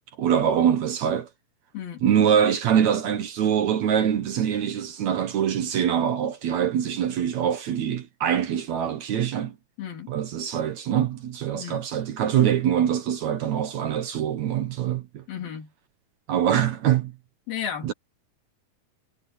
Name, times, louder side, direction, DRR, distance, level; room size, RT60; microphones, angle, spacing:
voice 1, 0.2-1.3 2.0-9.6 10.1-15.2 16.3-17.1 17.8-17.9, right 9 dB, 65° right, 2.1 m, -24 dB
voice 2, 9.8-10.1 11.5-11.8 15.3-15.7 17.5-17.9, left 8 dB, 85° left, 5.3 m, -34 dB
omnidirectional pair, 4.1 m